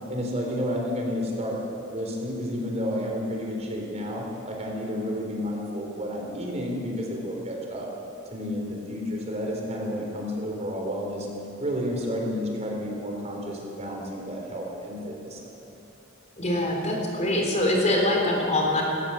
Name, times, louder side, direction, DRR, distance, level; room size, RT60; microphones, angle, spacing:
voice 1, 0.1-1.6 1.9-7.9 8.3-11.3 11.6-15.6, equal, 35° right, 0 dB, 4.2 m, -31 dB
voice 2, 16.4-18.8, left 1 dB, 35° left, 0 dB, 3.8 m, -24 dB
19.0 x 18.5 x 7.4 m, 2.6 s
head